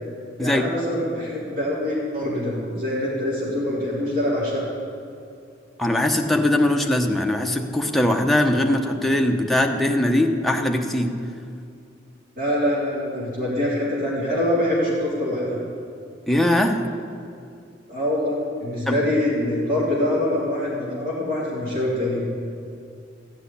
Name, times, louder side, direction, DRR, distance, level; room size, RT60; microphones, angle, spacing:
voice 1, 0.4-4.6 12.4-15.6 17.9-22.3, left 1 dB, 45° right, -9 dB, 3.8 m, -24 dB
voice 2, 5.8-11.1 16.3-16.8 18.9-19.0, left 1 dB, ahead, 2 dB, 0.9 m, -21 dB
15.0 x 6.3 x 9.9 m, 2.5 s
head